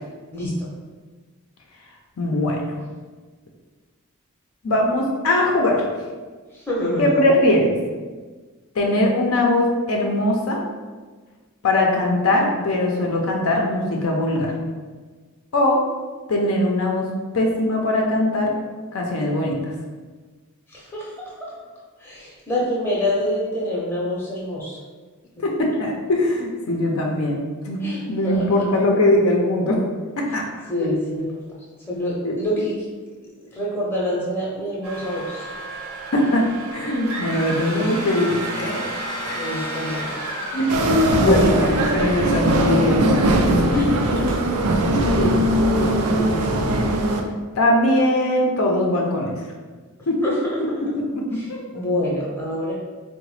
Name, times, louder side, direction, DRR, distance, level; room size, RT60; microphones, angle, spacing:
voice 1, 0.3-0.7 6.5-7.1 20.7-21.5 22.0-24.8 26.8-26.9 27.8-28.8 30.7-31.4 31.9-32.8 33.5-35.5 39.3-40.2 40.7-40.8 41.1-41.6 43.7-44.4 45.1-46.7 50.2-50.9 51.3-51.4 51.7-52.7, left 1 dB, 10° left, -6 dB, 0.6 m, -26 dB
voice 2, 2.2-2.8 4.6-5.8 7.0-7.7 8.8-10.6 11.6-14.5 15.5-15.8 16.3-17.1 17.3-18.5 18.9-19.7 25.4-27.4 27.7-27.8 28.1-29.8 30.2-30.4 32.2-32.3 36.1-36.5 36.7-38.8 39.2-39.4 40.5-43.3 47.6-49.4 50.1-50.2 51.1-51.2 51.5-51.6, left 1 dB, 70° left, 0 dB, 0.5 m, -20 dB
sound 1, 34.8-43.1 43.5-43.6 44.1-44.4, right 1 dB, 70° right, 0.8 m, -32 dB
sound 2, 40.7-47.2, right 1 dB, 85° right, 0.4 m, -20 dB
3.8 x 2.1 x 3.1 m, 1.4 s
head